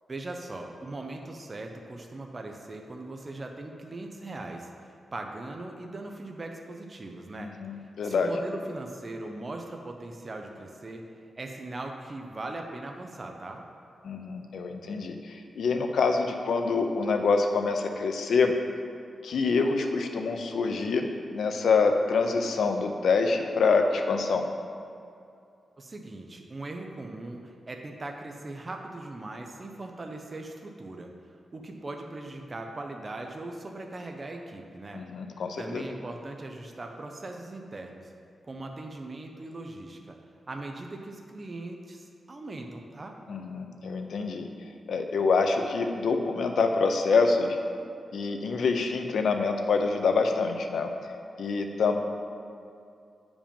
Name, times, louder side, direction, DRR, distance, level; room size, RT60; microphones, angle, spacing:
voice 1, 0.1-7.5 8.0-11.1 11.4-13.6 25.8-31.1 31.5-35.0 35.6-38.1 38.4-40.2 40.5-43.2, right 2 dB, 25° right, 2 dB, 0.6 m, -39 dB
voice 2, 7.4-8.3 14.0-18.5 19.2-24.4 34.9-35.8 43.3-44.5 44.9-47.6 48.1-50.9 51.4-52.0, left 4 dB, 80° left, 4 dB, 0.7 m, -26 dB
8.7 x 5.0 x 5.3 m, 2.5 s
wide cardioid pair, 160°, 0 cm